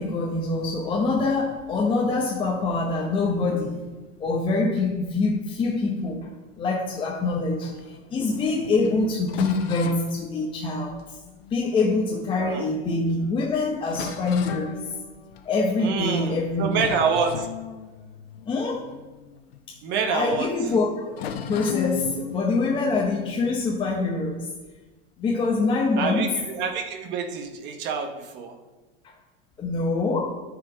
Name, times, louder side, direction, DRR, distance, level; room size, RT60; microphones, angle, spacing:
voice 1, 0.0-3.9 4.2-6.3 6.6-11.2 11.5-14.8 15.4-16.7 18.5-18.9 19.7-19.8 20.1-24.5 25.2-26.3 29.0-29.1 29.6-30.3, left 3 dB, 15° left, 0 dB, 0.8 m, -25 dB
sound 1, 7.6-12.5 13.1-13.2 13.5-13.6 13.9-15.8 16.2-16.4 16.7-20.1 20.3-20.5 21.1-24.2, left 7 dB, 80° left, 1.0 m, -37 dB
voice 2, 12.3-12.7 15.8-17.5 19.8-20.5 26.0-28.6, right 5 dB, 35° right, 6 dB, 1.0 m, -27 dB
9.9 x 4.9 x 5.0 m, 1.2 s
supercardioid pair, 140°, 30 cm